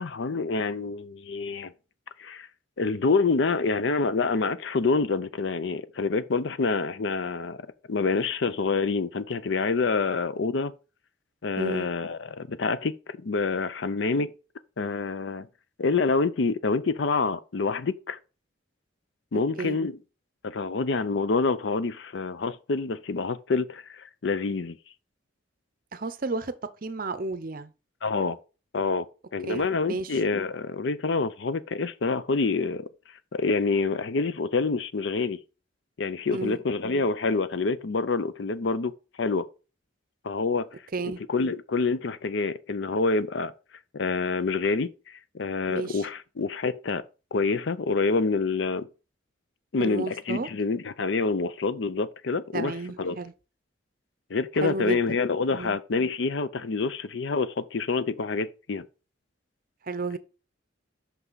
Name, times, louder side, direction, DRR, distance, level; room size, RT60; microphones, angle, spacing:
voice 1, 0.0-1.7 2.2-2.5 2.8-7.6 7.9-10.7 11.4-14.3 14.8-15.5 15.8-18.2 19.3-19.9 20.4-24.8 28.0-28.4 28.7-29.0 29.3-32.9 33.3-35.4 36.0-38.9 39.2-39.5 40.2-40.7 41.0-43.5 43.9-47.0 47.3-48.9 49.7-52.7 53.0-53.2 54.3-58.9, left 4 dB, 65° left, 0.5 m, -27 dB
voice 2, 11.6-11.9 19.6-19.8 25.9-26.5 26.8-27.7 29.4-30.2 36.3-36.6 40.9-41.2 45.7-46.1 49.7-50.5 52.5-53.3 54.6-55.0 55.5-55.8 59.8-60.2, right 3 dB, 45° right, 0.6 m, -32 dB
6.0 x 5.6 x 3.9 m
head